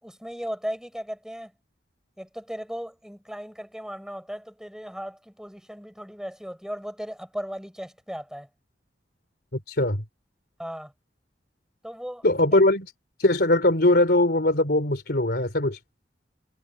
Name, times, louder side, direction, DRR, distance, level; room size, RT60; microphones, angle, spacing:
voice 1, 0.0-1.5 2.2-8.5 10.6-10.9 11.8-12.3, equal, 5° right, 6.9 m, -36 dB
voice 2, 9.7-10.0 12.2-12.9 13.2-15.8, left 1 dB, 60° left, 3.5 m, -21 dB
head